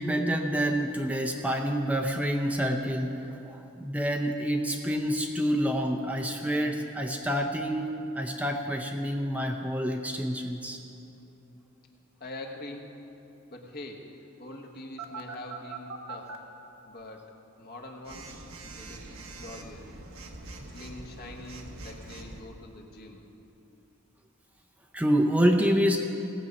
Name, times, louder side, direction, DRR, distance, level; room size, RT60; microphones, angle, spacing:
voice 1, 0.0-10.8 24.9-26.0, equal, 5° right, 2 dB, 0.6 m, -27 dB
voice 2, 12.2-13.0 13.5-14.0 14.4-16.4 16.8-19.0 19.3-19.9 20.6-23.2, left 2 dB, 50° left, 2 dB, 1.3 m, -44 dB
Telephone, 15.0-16.4 18.1-22.4, right 3 dB, 80° right, 1.2 m, -43 dB
17.5 x 7.7 x 5.4 m, 2.8 s
head